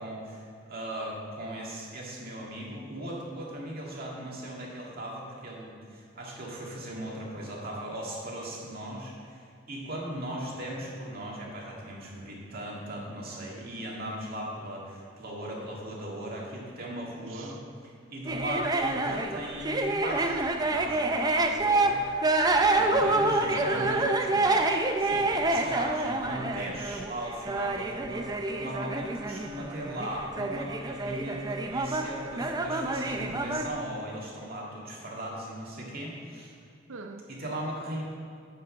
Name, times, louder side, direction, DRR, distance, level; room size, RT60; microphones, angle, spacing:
voice 1, 0.0-17.5 17.8-22.0 22.7-24.0 25.0-36.5 37.3-38.0, right 1 dB, 50° right, -3 dB, 2.0 m, -38 dB
voice 2, 17.2-17.6 23.5-24.9 36.9-37.3, right 2 dB, 80° right, 6 dB, 0.6 m, -40 dB
sound 1, 18.3-33.7, right 2 dB, 20° right, 0.5 m, -27 dB
9.9 x 5.5 x 6.2 m, 2.4 s
head